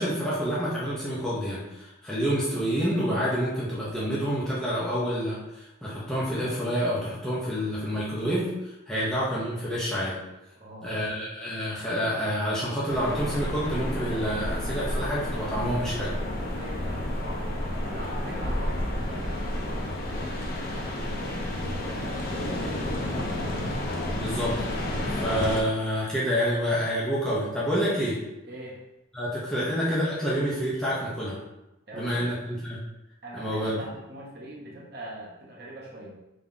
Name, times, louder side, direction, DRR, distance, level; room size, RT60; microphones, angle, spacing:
voice 1, 0.0-10.2 10.8-16.1 24.1-28.2 29.1-31.4 31.9-32.8 33.3-33.8, equal, 5° left, -9 dB, 0.8 m, -28 dB
voice 2, 10.6-10.9 16.5-23.6 28.4-28.8 29.6-29.7 31.9-32.3 33.2-36.1, equal, 55° right, -3 dB, 1.0 m, -42 dB
sound 1, 12.9-25.6, left 1 dB, 50° left, 0.6 m, -31 dB
3.5 x 2.9 x 3.7 m, 0.94 s
head